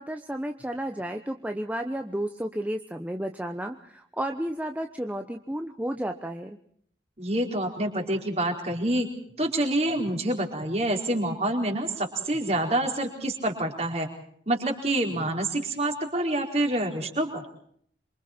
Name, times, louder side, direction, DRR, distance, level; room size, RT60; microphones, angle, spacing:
voice 1, 0.0-6.6, right 1 dB, 10° right, 5 dB, 1.0 m, -32 dB
voice 2, 7.2-9.1 9.4-14.1 14.5-17.4, right 1 dB, 35° right, 2 dB, 4.6 m, -27 dB
27.0 x 24.5 x 4.5 m, 0.63 s
head